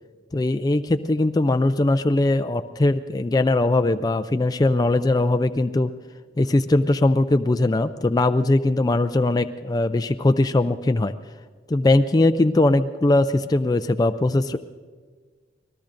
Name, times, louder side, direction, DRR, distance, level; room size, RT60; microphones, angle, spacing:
voice 1, 0.3-5.9 6.4-11.1 11.7-14.6, left 2 dB, 20° left, 9 dB, 0.3 m, -20 dB
25.5 x 19.0 x 2.6 m, 1.5 s
head